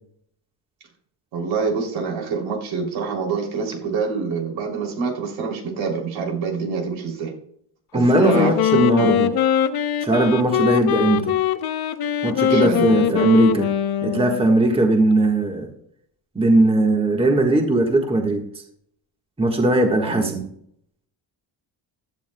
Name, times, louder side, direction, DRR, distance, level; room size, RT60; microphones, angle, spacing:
voice 1, 1.3-7.3 7.9-9.1 12.5-13.2 20.0-20.3, right 5 dB, 80° right, 0 dB, 3.2 m, -26 dB
voice 2, 7.9-9.3 10.0-11.3 12.2-13.7 14.0-15.7 16.3-18.4 19.4-20.5, right 2 dB, 10° right, 2 dB, 1.5 m, -19 dB
Wind instrument woodwind instrument, 8.0-14.6, left 10 dB, 50° left, 0.8 m, -22 dB
15.5 x 11.5 x 2.3 m, 0.69 s
cardioid pair, 130°, 46 cm